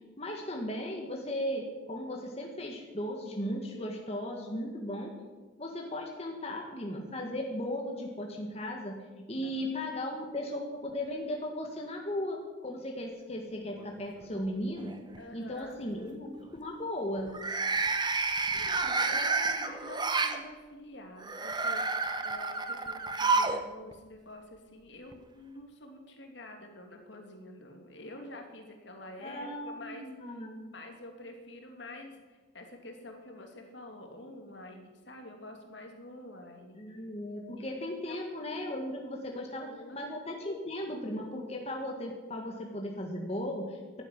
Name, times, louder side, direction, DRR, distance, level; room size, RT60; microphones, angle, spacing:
voice 1, 0.2-5.1 5.6-9.0 9.3-15.0 15.3-17.3 29.2-30.7 36.8-39.7 39.9-44.0, left 1 dB, 30° left, 1 dB, 1.8 m, -36 dB
sound 1, 13.8-14.4 14.8-15.2 17.3-20.4 21.2-23.6 23.9-24.0 25.1-25.2, right 3 dB, 20° right, 1.0 m, -30 dB
voice 2, 15.2-15.7 18.5-30.1 30.3-30.4 30.7-36.8 37.6-38.2 39.4-40.0 42.4-42.5, left 1 dB, 65° left, 3 dB, 2.8 m, -48 dB
12.0 x 11.0 x 9.7 m, 1.3 s
head